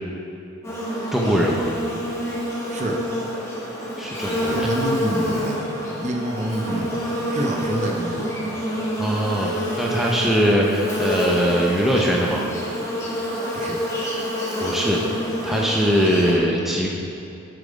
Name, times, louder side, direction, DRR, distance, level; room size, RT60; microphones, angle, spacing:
Buzz, 0.6-16.3, equal, 15° left, 1.5 m, -27 dB
voice 1, 1.1-1.6 4.0-4.7 9.0-12.4 14.6-15.0 15.4-16.9, equal, ahead, -3 dB, 0.7 m, -21 dB
voice 2, 2.7-3.0 4.4-5.6 5.9-8.6 13.5-13.8, right 1 dB, 35° right, 1 dB, 0.8 m, -28 dB
7.9 x 6.8 x 5.1 m, 2.8 s
head